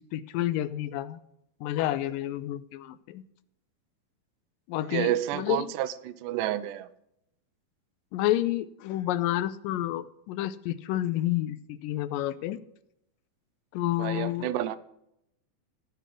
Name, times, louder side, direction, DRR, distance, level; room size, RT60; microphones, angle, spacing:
voice 1, 0.1-1.2 1.6-3.2 4.7-5.7 8.1-12.6 13.7-14.5, left 14 dB, 85° left, 14 dB, 2.2 m, -29 dB
voice 2, 4.9-6.9 14.0-14.8, right 13 dB, 80° right, 15 dB, 2.2 m, -30 dB
15.0 x 5.0 x 7.6 m, 0.78 s
omnidirectional pair, 4.0 m